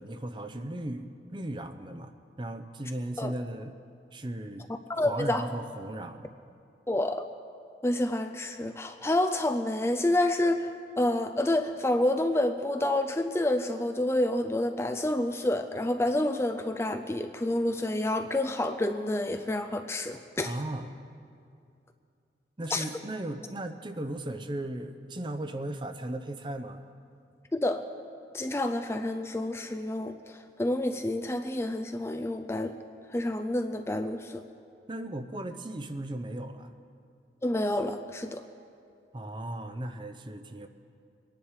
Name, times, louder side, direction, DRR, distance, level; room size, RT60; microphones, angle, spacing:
voice 1, 0.0-2.1 2.4-3.8 4.1-4.6 4.9-6.3 20.4-20.9 22.6-26.8 34.9-36.7 39.1-40.7, right 1 dB, 25° right, 8 dB, 0.6 m, -36 dB
voice 2, 4.9-5.4 6.9-7.2 7.8-10.7 11.0-20.5 22.7-22.8 27.5-27.8 28.3-32.7 33.1-34.4 37.4-38.4, left 1 dB, 15° left, 7 dB, 0.4 m, -28 dB
23.0 x 10.5 x 4.8 m, 2.4 s
head